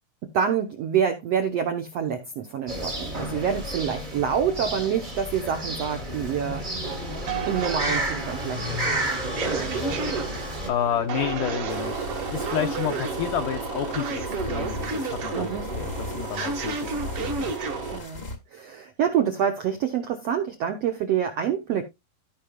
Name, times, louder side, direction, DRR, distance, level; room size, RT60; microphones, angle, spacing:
voice 1, 0.2-6.6 7.5-8.6 8.9-10.0 12.8-13.0 15.3-15.7 17.9-18.2 18.5-21.8, right 8 dB, 75° right, 1.5 m, -27 dB
sound 1, 2.7-10.7, right 1 dB, 30° right, 0.8 m, -31 dB
sound 2, 6.8-18.0, right 4 dB, 50° right, 2.1 m, -31 dB
voice 2, 10.7-17.5, left 10 dB, 75° left, 1.9 m, -30 dB
sound 3, 11.7-18.4, left 2 dB, 45° left, 0.8 m, -38 dB
15.5 x 5.6 x 2.3 m
omnidirectional pair, 4.4 m